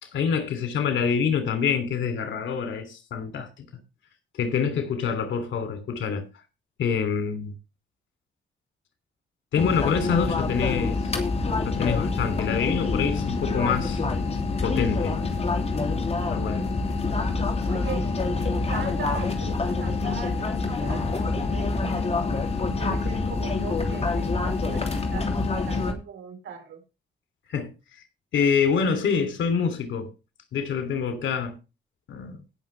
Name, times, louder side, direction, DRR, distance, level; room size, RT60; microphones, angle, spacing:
voice 1, 0.0-3.6 4.3-6.3 6.8-7.5 9.5-11.1 11.6-14.0 14.6-15.2 16.3-16.7 27.5-27.7 28.3-30.1 30.5-31.6 32.1-32.4, left 6 dB, 85° left, 2.9 m, -26 dB
sound 1, 9.6-25.9, left 3 dB, 35° left, 3.0 m, -26 dB
voice 2, 17.6-26.8, right 7 dB, 85° right, 3.9 m, -40 dB
18.5 x 6.7 x 3.3 m
cardioid pair, 85°, 19 cm